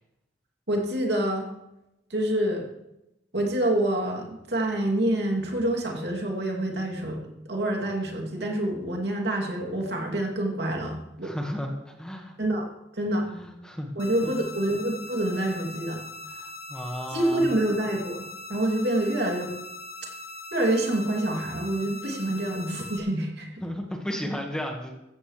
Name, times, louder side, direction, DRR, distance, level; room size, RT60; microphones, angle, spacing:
voice 1, 0.7-1.5 2.1-2.7 3.3-7.2 7.5-11.3 12.4-12.7 13.0-13.3 14.0-16.0 17.1-19.5 20.5-23.6, right 1 dB, 65° right, 0 dB, 2.8 m, -27 dB
voice 2, 11.2-12.4 13.3-13.9 14.2-14.4 16.3-17.5 23.6-24.9, equal, 5° left, 1 dB, 1.6 m, -34 dB
sound 1, 14.0-23.0, left 2 dB, 55° left, 1.4 m, -41 dB
15.5 x 14.5 x 3.3 m, 0.89 s
head